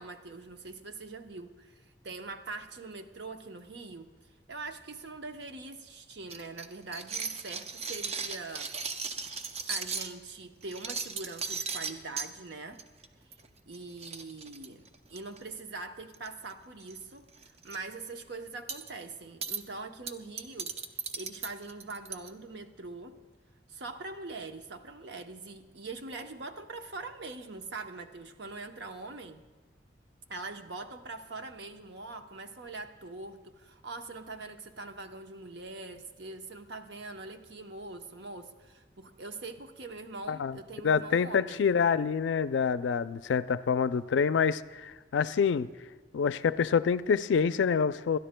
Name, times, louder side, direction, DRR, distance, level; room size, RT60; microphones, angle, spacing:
voice 1, 0.0-4.1 4.5-8.8 9.7-12.8 13.7-20.7 21.1-23.1 23.7-29.4 30.3-41.6, right 3 dB, 70° right, 6 dB, 0.8 m, -43 dB
sound 1, 6.3-10.1 10.6-12.3 12.8-13.1 13.3-13.5 13.7-13.8 14.0-15.4 16.1-16.5 16.8-17.0 17.3-17.8 18.7-18.9 19.4-19.6 20.1-22.3, right 5 dB, 35° right, 0.5 m, -36 dB
voice 2, 40.3-40.6 40.8-45.7 46.1-48.2, left 6 dB, 85° left, 14 dB, 0.4 m, -27 dB
27.0 x 12.5 x 2.2 m, 1.3 s
head